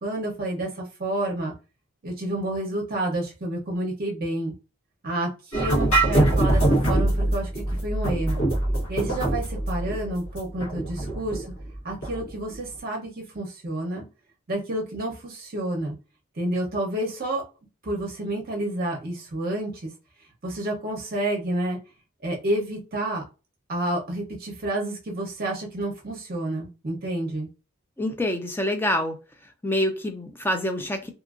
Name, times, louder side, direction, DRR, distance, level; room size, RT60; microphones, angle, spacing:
voice 1, 0.0-1.5 2.0-4.5 5.0-7.5 7.8-8.4 8.9-11.5 11.8-14.0 14.5-15.9 16.4-17.4 17.8-19.9 20.4-21.8 22.2-23.2 23.7-27.5, right 1 dB, 45° right, 0.7 m, -29 dB
sound 1, 5.5-12.3, right 1 dB, 90° left, 1.4 m, -23 dB
voice 2, 28.0-29.2 29.6-31.1, left 1 dB, 10° left, 0.4 m, -26 dB
2.8 x 2.4 x 2.3 m
head